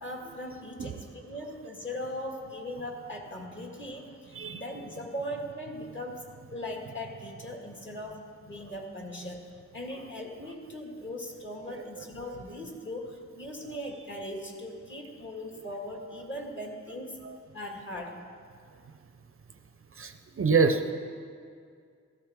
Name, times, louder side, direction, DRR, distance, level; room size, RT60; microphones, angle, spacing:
voice 1, 0.0-9.5 9.7-17.2 17.5-18.2, left 1 dB, 40° left, 0 dB, 1.9 m, -39 dB
voice 2, 11.7-12.0 17.2-17.4 20.0-20.9, right 5 dB, 45° right, 7 dB, 0.6 m, -27 dB
15.0 x 14.0 x 3.6 m, 2.2 s
wide cardioid pair, 120°, 30 cm